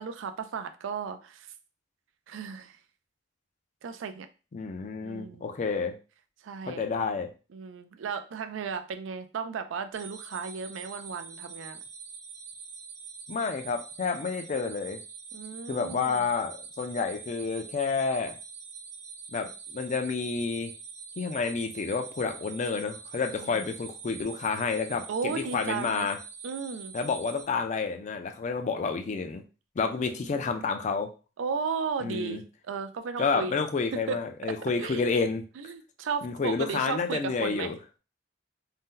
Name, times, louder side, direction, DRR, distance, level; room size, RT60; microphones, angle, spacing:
voice 1, 0.0-1.5 2.3-2.8 3.8-4.3 5.0-5.6 6.4-6.8 7.5-11.8 15.3-16.2 23.4-23.7 25.1-26.1 26.4-26.9 29.8-30.7 31.4-33.6 34.1-34.2 34.8-35.0 35.6-37.7, right 5 dB, 85° right, 8 dB, 0.4 m, -35 dB
voice 2, 4.5-5.9 6.7-7.3 13.3-15.0 15.7-18.4 19.3-20.7 21.2-26.2 26.9-29.4 29.8-31.1 32.0-32.4 33.2-35.4 36.2-37.8, left 4 dB, 40° left, 5 dB, 0.4 m, -30 dB
sound 1, 9.9-27.4, right 5 dB, 40° right, 0.7 m, -45 dB
2.7 x 2.1 x 3.7 m, 0.34 s
head